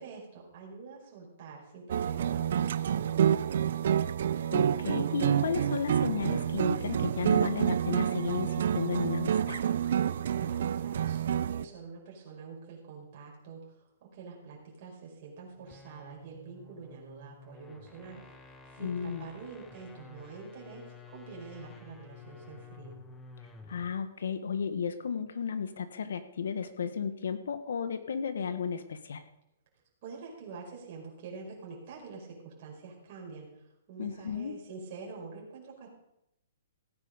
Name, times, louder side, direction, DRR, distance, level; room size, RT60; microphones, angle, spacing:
voice 1, 0.0-3.7 10.1-23.0 30.0-35.9, right 4 dB, 40° right, -2 dB, 4.9 m, -46 dB
sound 1, 1.9-11.6, right 9 dB, 60° right, 0.6 m, -28 dB
voice 2, 4.5-9.6 18.8-19.3 23.7-29.2 34.0-34.5, left 6 dB, 80° left, 10 dB, 1.5 m, -34 dB
sound 2, 15.5-24.0, left 4 dB, 10° left, 1.1 m, -52 dB
16.0 x 9.4 x 5.2 m, 0.83 s
hypercardioid pair, 160°, 0 cm